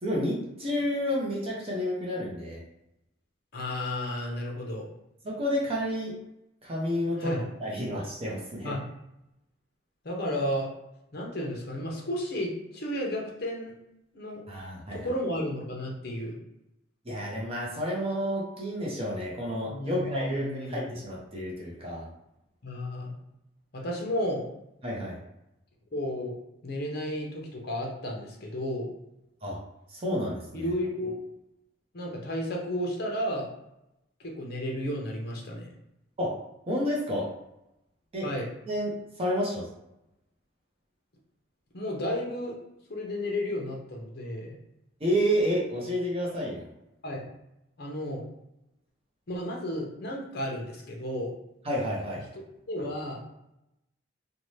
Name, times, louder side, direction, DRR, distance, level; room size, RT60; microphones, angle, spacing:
voice 1, 0.0-2.6 5.2-6.2 6.6-7.3 7.6-8.8 14.5-15.1 17.0-22.1 24.8-25.2 29.4-29.6 29.9-30.7 36.2-36.4 36.7-37.3 38.1-38.3 38.7-38.9 39.2-39.7 45.0-46.7 51.6-52.2, equal, 30° right, -5 dB, 0.6 m, -30 dB
voice 2, 3.5-4.9 7.2-7.5 8.6-8.8 10.0-10.7 11.1-13.7 14.1-14.4 14.9-16.4 19.7-21.0 22.6-23.1 23.7-24.4 25.9-26.3 26.6-28.9 30.5-31.2 31.9-33.5 34.2-35.7 38.2-38.4 41.7-42.5 42.9-44.6 47.0-47.3 47.8-48.2 49.3-51.3 52.7-53.2, left 1 dB, 55° left, -1 dB, 0.7 m, -32 dB
2.7 x 2.2 x 3.1 m, 0.87 s
head